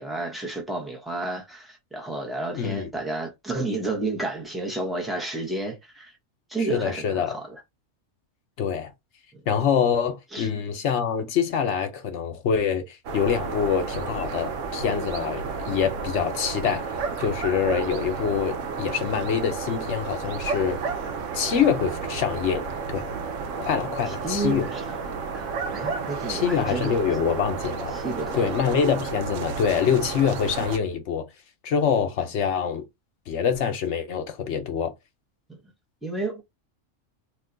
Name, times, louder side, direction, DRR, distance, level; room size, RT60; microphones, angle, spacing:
voice 1, 0.0-6.1 6.5-7.6 10.3-10.5 24.1-26.9 27.9-28.5 35.5-35.6 36.0-36.4, right 2 dB, ahead, 0.5 m, -31 dB
voice 2, 2.5-2.9 6.6-7.4 8.6-8.9 9.5-16.8 17.2-20.8 21.3-23.1 23.6-24.7 26.3-27.9 28.3-31.3 31.6-32.8 33.3-34.9, left 7 dB, 65° left, 1.0 m, -25 dB
sound 1, 13.1-30.8, right 5 dB, 80° right, 0.9 m, -32 dB
2.7 x 2.2 x 3.7 m
omnidirectional pair, 1.3 m